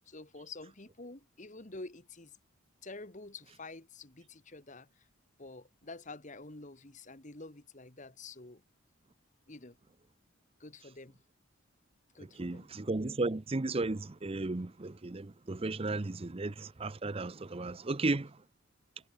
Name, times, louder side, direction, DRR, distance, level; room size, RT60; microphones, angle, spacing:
voice 1, 0.0-2.4 2.8-5.1 5.4-8.6 9.5-9.8 10.6-11.2 12.1-12.7, left 3 dB, 35° left, 1.7 m, -48 dB
voice 2, 12.2-18.4, right 2 dB, 30° right, 0.6 m, -34 dB
head